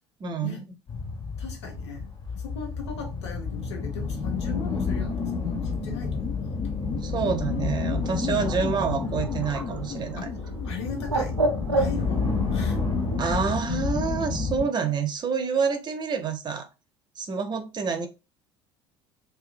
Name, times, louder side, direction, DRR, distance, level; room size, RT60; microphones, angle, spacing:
voice 1, 0.2-0.6 7.0-10.2 13.2-16.7 17.2-18.1, right 6 dB, 30° right, 0.6 m, -28 dB
sound 1, 0.9-14.7, left 4 dB, 50° left, 1.3 m, -30 dB
voice 2, 1.4-7.0 7.3-7.5 10.2-10.3 10.6-11.4 11.7-12.8, left 5 dB, 75° left, 0.7 m, -39 dB
sound 2, 3.1-12.8, left 7 dB, 30° left, 0.3 m, -39 dB
Bird, 7.7-13.2, right 2 dB, 90° right, 0.4 m, -32 dB
2.7 x 2.2 x 2.4 m
figure-of-eight pair, 65°, 14 cm